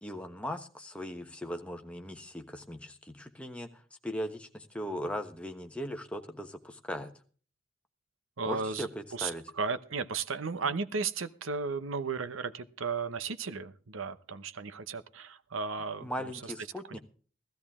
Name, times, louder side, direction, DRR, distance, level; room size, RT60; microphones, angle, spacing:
voice 1, 0.0-7.1 8.4-9.4 16.0-17.0, equal, 5° left, 5 dB, 1.2 m, -39 dB
voice 2, 8.4-16.5 16.9-17.0, right 5 dB, 80° right, 12 dB, 0.9 m, -35 dB
15.5 x 14.0 x 3.6 m, 0.41 s
head